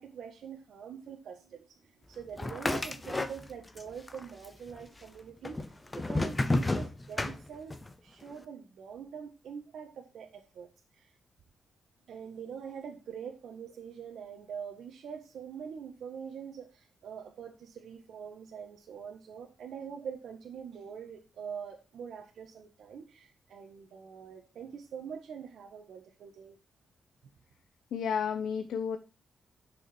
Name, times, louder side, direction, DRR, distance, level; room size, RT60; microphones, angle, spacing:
voice 1, 0.0-5.6 5.9-7.7 8.0-11.2 12.1-26.6, right 7 dB, 75° right, 1.4 m, -44 dB
sound 1, 2.4-3.8 4.1-4.8 5.4-7.9, left 2 dB, 15° left, 0.8 m, -31 dB
voice 2, 27.9-29.0, left 7 dB, 85° left, 0.9 m, -31 dB
10.5 x 6.4 x 4.4 m
wide cardioid pair, 175°, 0 cm